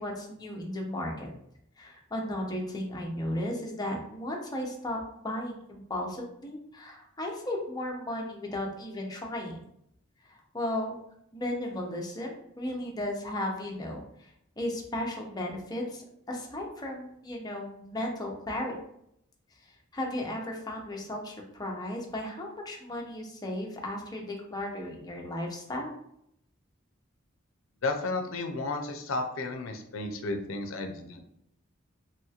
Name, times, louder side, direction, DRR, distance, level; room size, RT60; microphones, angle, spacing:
voice 1, 0.0-1.3 1.8-9.6 10.3-11.0 11.3-14.3 14.6-18.8 19.6-25.9, left 1 dB, 20° left, 0 dB, 0.6 m, -35 dB
voice 2, 27.8-31.2, left 2 dB, 75° left, 5 dB, 0.5 m, -33 dB
3.1 x 2.9 x 2.3 m, 0.73 s
head